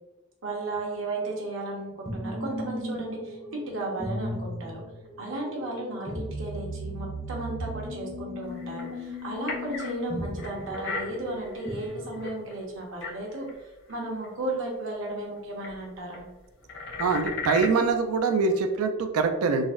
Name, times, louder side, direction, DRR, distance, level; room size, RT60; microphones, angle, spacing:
voice 1, 0.4-3.4 3.7-4.8 5.2-13.5 13.9-16.2, right 2 dB, 60° right, -1 dB, 0.8 m, -34 dB
sound 1, 2.1-12.8, equal, ahead, 0.5 m, -37 dB
sound 2, 8.4-10.0 10.4-12.6 13.0-13.6 13.9-14.0 14.2-14.3 15.6-15.9 16.1-17.8 18.2-18.6, left 4 dB, 55° left, 0.5 m, -37 dB
voice 2, 17.0-19.7, right 4 dB, 80° right, 6 dB, 0.4 m, -24 dB
3.9 x 2.0 x 2.4 m, 1.0 s
head